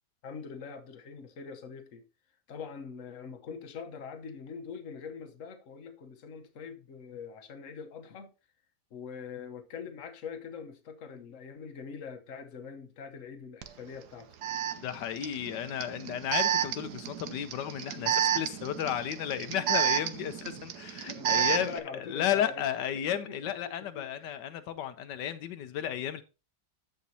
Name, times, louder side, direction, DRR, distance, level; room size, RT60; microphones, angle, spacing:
voice 1, 0.2-2.0 2.5-8.3 8.9-14.3 21.1-22.6 22.9-24.3, left 6 dB, 50° left, 1.3 m, -43 dB
Alarm, 13.6-13.7 14.4-21.8, right 10 dB, 75° right, 1.3 m, -31 dB
voice 2, 14.8-26.2, left 10 dB, 85° left, 1.4 m, -33 dB
14.0 x 5.2 x 2.8 m
omnidirectional pair, 1.8 m